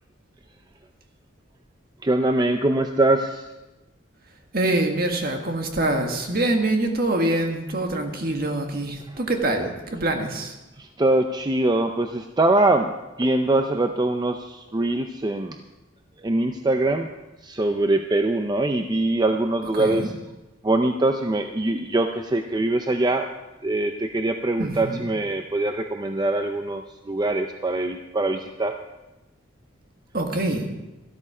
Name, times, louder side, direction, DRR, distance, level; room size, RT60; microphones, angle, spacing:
voice 1, 2.0-3.5 10.8-15.6 16.2-17.1 17.4-20.1 20.6-23.3 23.6-28.8, right 2 dB, 20° right, 5 dB, 0.5 m, -23 dB
voice 2, 4.5-10.5 19.8-20.1 24.6-25.1 30.1-30.7, right 2 dB, 50° right, 4 dB, 1.7 m, -25 dB
13.5 x 12.5 x 4.9 m, 1.0 s
head